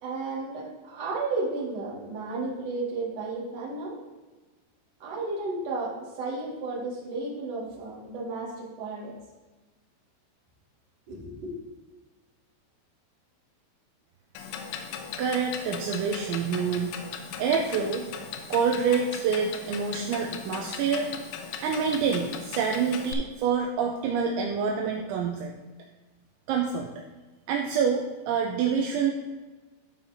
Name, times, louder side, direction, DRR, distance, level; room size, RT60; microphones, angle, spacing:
voice 1, 0.0-3.9 5.0-5.9 6.2-9.1 11.1-11.5, right 3 dB, 50° right, -6 dB, 2.2 m, -33 dB
Clock, 14.4-23.1, left 7 dB, 80° left, 2.9 m, -38 dB
voice 2, 15.2-16.9 17.4-18.0 18.5-21.1 21.6-25.5 26.5-26.9 27.5-29.1, right 6 dB, 85° right, 1 dB, 2.7 m, -27 dB
12.5 x 5.5 x 2.8 m, 1.2 s
omnidirectional pair, 5.8 m